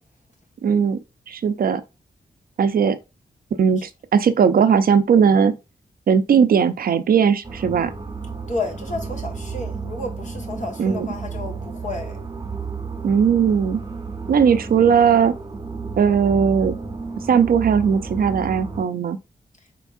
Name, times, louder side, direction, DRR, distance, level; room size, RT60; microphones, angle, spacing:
voice 1, 0.6-1.0 1.3-1.8 2.6-3.0 3.6-5.6 6.1-7.9 10.8-11.1 13.0-13.8 14.3-15.3 16.0-16.7 17.3-19.2, right 7 dB, 65° right, 0.4 m, -18 dB
sound 1, 7.4-18.9, right 4 dB, 25° right, 0.7 m, -32 dB
voice 2, 8.5-12.2, left 2 dB, 50° left, 1.2 m, -31 dB
4.5 x 3.5 x 2.4 m
wide cardioid pair, 165°, 16 cm